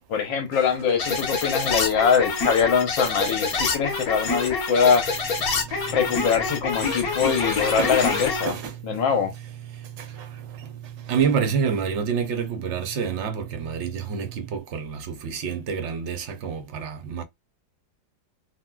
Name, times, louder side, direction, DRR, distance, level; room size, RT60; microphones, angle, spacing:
voice 1, 0.1-5.1 5.9-8.6 8.8-9.3, left 6 dB, 80° left, 1.6 m, -23 dB
sound 1, 1.0-8.5, left 4 dB, 55° left, 1.5 m, -26 dB
sound 2, 5.0-14.6, right 10 dB, 35° right, 0.3 m, -41 dB
voice 2, 6.8-8.7 10.0-10.7 11.1-17.2, right 6 dB, 60° right, 0.7 m, -29 dB
4.1 x 2.2 x 2.3 m
omnidirectional pair, 2.0 m